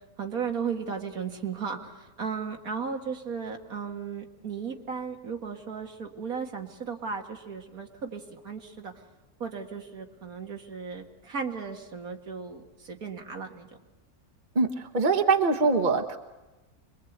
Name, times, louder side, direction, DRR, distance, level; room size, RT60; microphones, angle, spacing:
voice 1, 0.2-8.9 9.4-13.7, right 6 dB, 70° right, 3 dB, 2.3 m, -35 dB
voice 2, 14.5-16.2, right 4 dB, 35° right, 6 dB, 1.3 m, -23 dB
26.0 x 22.5 x 8.1 m, 1.1 s
omnidirectional pair, 1.6 m